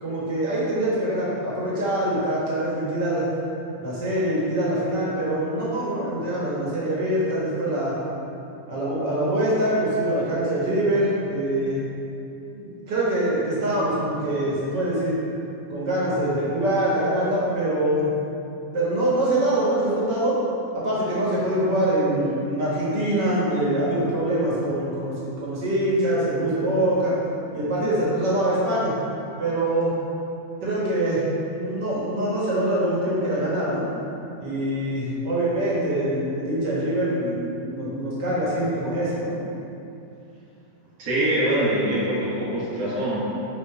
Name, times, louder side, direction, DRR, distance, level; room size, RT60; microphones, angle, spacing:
voice 1, 0.0-3.2 3.8-8.0 8.7-11.8 12.5-15.2 15.7-18.1 18.7-20.4 20.7-27.1 27.5-28.9 29.4-29.9 30.6-31.2 31.5-33.9 34.4-39.3, right 1 dB, 65° right, -7 dB, 1.9 m, -24 dB
voice 2, 41.0-43.2, right 1 dB, 50° right, -8 dB, 1.5 m, -23 dB
5.6 x 3.6 x 4.8 m, 2.7 s
omnidirectional pair, 2.0 m